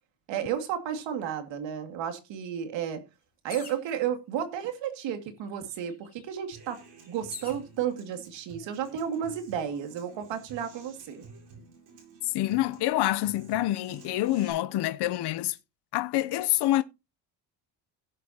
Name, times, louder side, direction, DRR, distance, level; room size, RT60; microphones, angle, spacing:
voice 1, 0.3-3.0 3.4-6.8 7.1-11.2, right 9 dB, 90° right, 2.2 m, -32 dB
sound 1, 3.5-3.9 4.8-4.9 5.3-7.6 8.4-8.9, left 5 dB, 20° left, 4.3 m, -46 dB
Human voice / Acoustic guitar, 6.5-14.5, right 4 dB, 65° right, 7.9 m, -51 dB
voice 2, 12.3-15.6 15.9-16.8, left 15 dB, 65° left, 0.7 m, -26 dB
17.0 x 7.6 x 2.8 m
cardioid pair, 150°, 43 cm